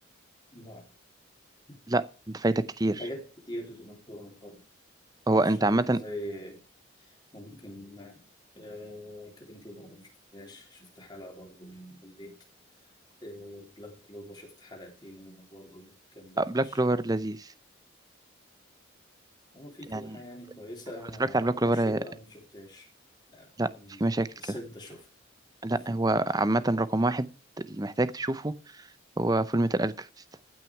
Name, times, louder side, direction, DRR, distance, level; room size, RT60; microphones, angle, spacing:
voice 1, 0.5-0.9 1.7-1.8 3.0-4.6 5.3-6.6 7.0-8.2 8.6-12.3 13.2-16.8 19.5-22.9 23.3-24.1 24.4-25.1 25.7-26.0, equal, 20° left, 3.5 m, -44 dB
voice 2, 1.9-3.0 5.3-6.0 16.4-17.5 19.9-20.2 21.3-22.0 23.6-23.7 24.0-24.3 25.6-27.3 27.6-28.5 29.2-30.1, right 2 dB, 20° right, 0.6 m, -26 dB
15.0 x 6.3 x 4.6 m
head